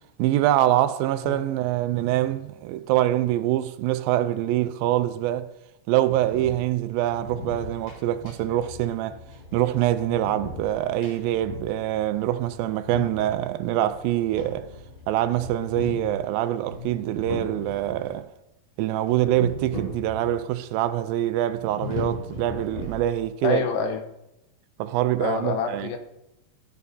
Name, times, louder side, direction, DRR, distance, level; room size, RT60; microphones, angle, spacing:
voice 1, 0.2-5.5 5.9-9.2 9.5-14.7 15.1-18.3 18.8-23.6 24.8-25.9, right 13 dB, 90° right, 2.4 m, -24 dB
sound 1, 6.0-18.2 19.0-20.5 20.8-20.9 21.5-23.4, left 3 dB, 65° left, 5.8 m, -39 dB
voice 2, 23.4-24.0 25.2-26.0, left 5 dB, 85° left, 2.7 m, -26 dB
14.0 x 9.4 x 2.7 m
omnidirectional pair, 4.1 m